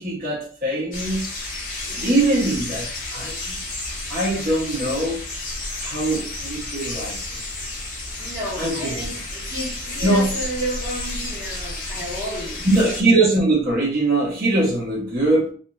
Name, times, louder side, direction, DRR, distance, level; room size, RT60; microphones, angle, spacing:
voice 1, 0.0-1.3 2.0-3.6 4.1-5.2 5.8-7.2 8.6-9.0 10.0-10.3 12.6-15.5, right 2 dB, 45° right, 0.7 m, -21 dB
sound 1, 0.9-13.0, left 2 dB, 45° left, 0.8 m, -31 dB
voice 2, 1.9-2.3 8.2-12.7, right 1 dB, 10° left, 1.0 m, -32 dB
2.9 x 2.3 x 2.3 m
head